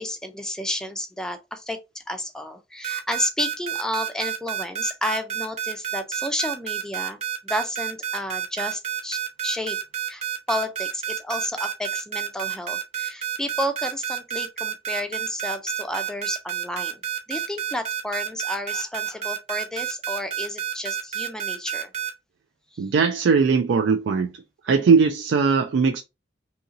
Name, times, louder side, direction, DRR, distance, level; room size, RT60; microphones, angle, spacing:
voice 1, 0.0-9.8 10.1-17.0 17.3-21.9 22.7-22.8 24.7-24.9, left 1 dB, 5° left, 0.4 m, -31 dB
sound 1, 2.8-22.1, right 10 dB, 35° right, 0.6 m, -29 dB
voice 2, 22.8-24.3 24.6-26.0, right 5 dB, 80° right, 0.3 m, -19 dB
2.8 x 2.6 x 2.5 m
head